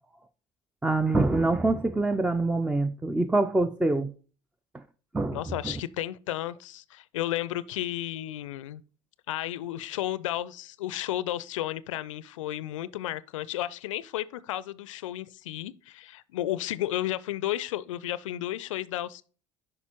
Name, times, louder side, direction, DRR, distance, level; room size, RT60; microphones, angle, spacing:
voice 1, 0.8-4.1 5.1-5.7, right 2 dB, 5° right, 0.4 m, -25 dB
voice 2, 5.3-8.8 9.3-19.2, left 14 dB, 75° left, 0.4 m, -33 dB
9.6 x 5.4 x 3.0 m
hypercardioid pair, 65°, 16 cm